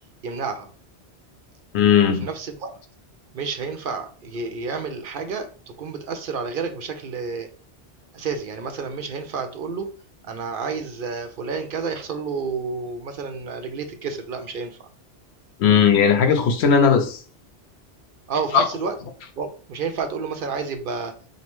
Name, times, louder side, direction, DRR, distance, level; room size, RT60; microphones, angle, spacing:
voice 1, 0.2-0.7 2.0-2.8 3.3-5.5 5.8-7.5 8.1-9.9 10.3-14.9 18.3-18.9 19.4-21.1, right 5 dB, 60° right, 0.7 m, -30 dB
voice 2, 1.7-2.2 15.6-17.2 18.5-18.6, left 7 dB, 80° left, 0.9 m, -17 dB
5.1 x 2.1 x 3.0 m
omnidirectional pair, 1.1 m